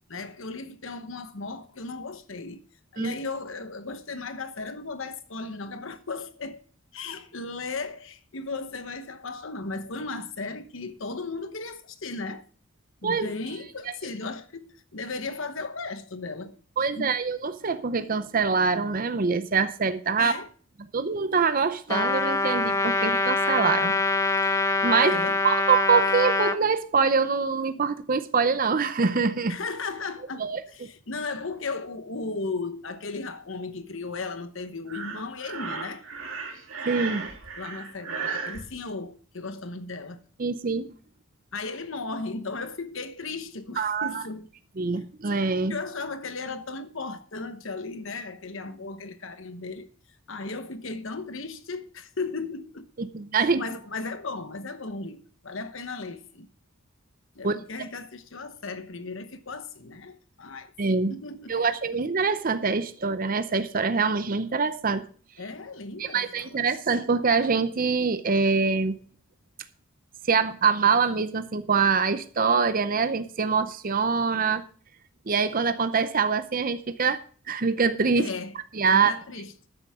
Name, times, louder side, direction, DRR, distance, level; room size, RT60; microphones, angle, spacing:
voice 1, 0.1-2.6 2.9-6.6 6.9-12.4 13.0-16.6 17.0-17.1 20.2-20.5 25.0-25.4 29.5-36.0 37.6-40.2 41.5-44.5 45.7-49.9 50.3-52.9 53.4-56.5 57.3-60.7 61.1-61.5 65.4-66.6 78.2-78.6 78.9-79.7, left 3 dB, 60° left, 1.1 m, -36 dB
voice 2, 16.8-20.3 20.9-23.9 24.4-25.1 25.4-29.6 30.4-30.6 36.9-37.3 40.4-40.9 43.8-44.2 44.8-45.8 53.0-53.6 57.4-57.6 60.8-61.1 61.5-65.0 66.0-69.0 70.3-74.6 75.3-77.2 77.5-78.3 78.7-79.1, right 5 dB, 40° right, 0.6 m, -24 dB
Trumpet, 21.9-26.6, left 3 dB, 15° left, 0.6 m, -24 dB
Breathing, 34.9-38.6, right 5 dB, 60° right, 2.6 m, -35 dB
13.0 x 10.0 x 3.7 m
head